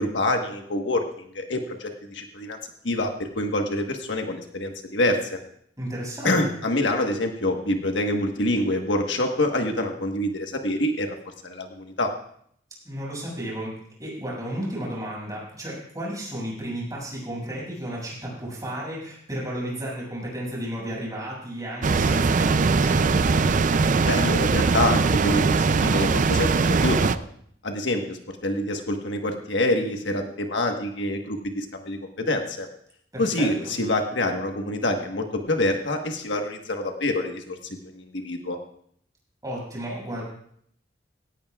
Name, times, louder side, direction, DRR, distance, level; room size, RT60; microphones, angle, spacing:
voice 1, 0.0-2.6 2.8-5.4 6.2-11.1 11.4-12.1 24.0-27.2 27.6-32.7 33.2-37.6 37.8-38.6, left 1 dB, 70° left, 3 dB, 1.4 m, -26 dB
voice 2, 5.8-6.5 12.8-23.3 33.1-33.8 39.4-40.2, right 1 dB, 20° right, -5 dB, 6.5 m, -33 dB
sound 1, 21.8-27.1, right 4 dB, 45° right, 0.4 m, -21 dB
17.0 x 17.0 x 2.4 m, 0.66 s
head